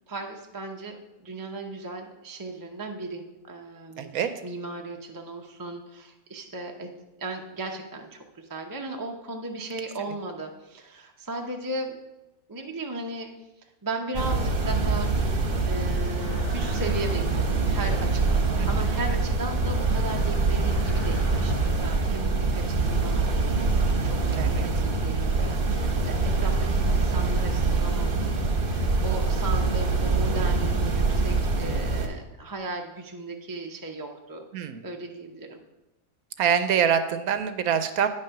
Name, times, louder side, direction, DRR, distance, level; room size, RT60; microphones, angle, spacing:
voice 1, 0.1-1.0 1.2-6.9 7.2-12.0 12.5-13.3 13.8-15.1 15.6-23.6 24.0-28.3 28.7-34.4 34.8-35.6, right 2 dB, 20° right, 2 dB, 0.5 m, -36 dB
voice 2, 4.0-4.3 18.6-18.7 24.4-24.7 34.5-34.8 36.4-38.1, right 8 dB, 75° right, 10 dB, 1.1 m, -25 dB
sound 1, 14.1-32.1, right 3 dB, 40° right, 1.1 m, -24 dB
sound 2, 16.2-21.7, left 1 dB, 40° left, 1.6 m, -44 dB
9.6 x 6.5 x 5.8 m, 1.0 s
omnidirectional pair, 1.6 m